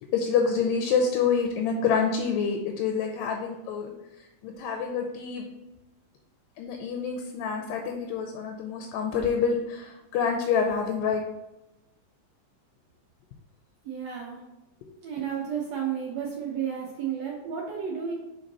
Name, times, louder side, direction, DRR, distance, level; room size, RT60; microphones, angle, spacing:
voice 1, 0.0-3.9 4.2-5.4 6.6-11.2 14.8-14.9, left 6 dB, 80° left, 3 dB, 2.2 m, -27 dB
voice 2, 13.8-14.4 15.0-18.1, right 8 dB, 80° right, -2 dB, 1.5 m, -32 dB
5.3 x 5.0 x 4.0 m, 0.98 s
omnidirectional pair, 4.1 m